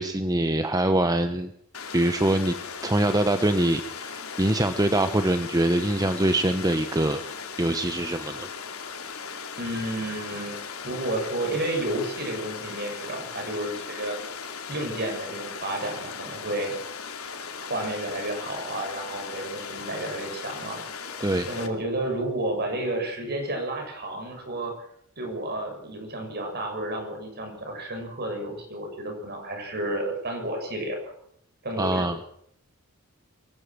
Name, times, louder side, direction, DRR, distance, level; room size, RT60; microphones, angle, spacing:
voice 1, 0.0-1.5 1.9-2.5 2.8-7.2 7.6-8.5 21.2-21.5 31.8-32.2, right 1 dB, 15° right, 8 dB, 1.0 m, -24 dB
Water, 1.7-21.7, left 6 dB, 90° left, 3.0 m, -38 dB
voice 2, 9.6-14.2 14.7-16.7 17.6-21.1 21.5-24.9 25.2-31.1 31.6-32.1, right 1 dB, 50° right, 4 dB, 6.9 m, -31 dB
23.5 x 15.0 x 7.7 m, 0.70 s
head